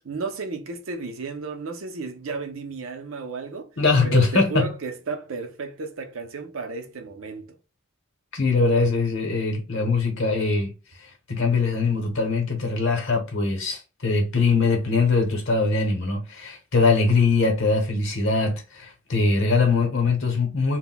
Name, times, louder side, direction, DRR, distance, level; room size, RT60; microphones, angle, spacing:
voice 1, 0.0-3.7 4.0-7.6, right 4 dB, 70° right, 0.6 m, -33 dB
voice 2, 3.8-4.7 8.3-10.7 11.3-20.8, left 4 dB, 60° left, 0.8 m, -22 dB
2.2 x 2.1 x 3.8 m
head